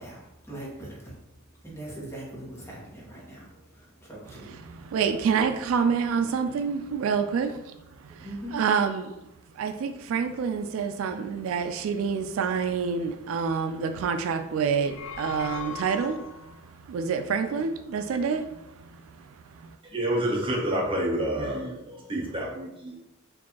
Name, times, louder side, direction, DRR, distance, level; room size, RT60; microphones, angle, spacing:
voice 1, 0.0-5.0 8.1-8.6, right 1 dB, 15° left, 1.1 m, -42 dB
voice 2, 4.6-7.5 8.0-8.3 8.5-9.1 9.5-18.6 19.3-19.8, right 6 dB, 75° right, 0.3 m, -27 dB
sound 1, 14.7-16.6, left 6 dB, 75° left, 0.3 m, -39 dB
voice 3, 19.8-23.1, right 1 dB, 25° right, 0.7 m, -29 dB
4.5 x 2.6 x 2.8 m
head